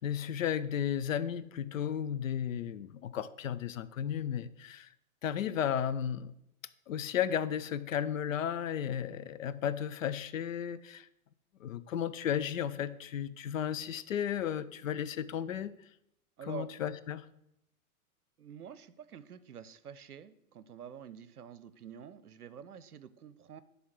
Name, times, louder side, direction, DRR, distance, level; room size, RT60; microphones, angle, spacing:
voice 1, 0.0-4.9 5.2-6.3 6.9-11.1 11.6-15.7 16.5-17.2, left 9 dB, 65° left, 14 dB, 0.6 m, -34 dB
voice 2, 16.4-16.7 18.4-23.6, right 7 dB, 85° right, 15 dB, 0.6 m, -47 dB
10.5 x 3.6 x 6.1 m, 0.81 s
figure-of-eight pair, 100°, 44 cm